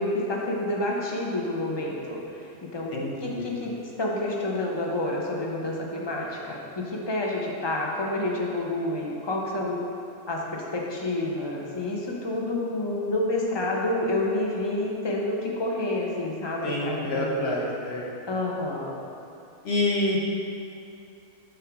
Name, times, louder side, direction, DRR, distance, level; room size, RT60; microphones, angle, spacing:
voice 1, 0.0-9.8 10.3-17.6 18.3-19.0, left 1 dB, 30° left, -2 dB, 0.4 m, -29 dB
voice 2, 2.9-3.5 16.6-18.1 19.6-20.2, left 1 dB, 50° left, -2 dB, 1.0 m, -27 dB
6.7 x 3.7 x 5.8 m, 2.7 s
omnidirectional pair, 1.6 m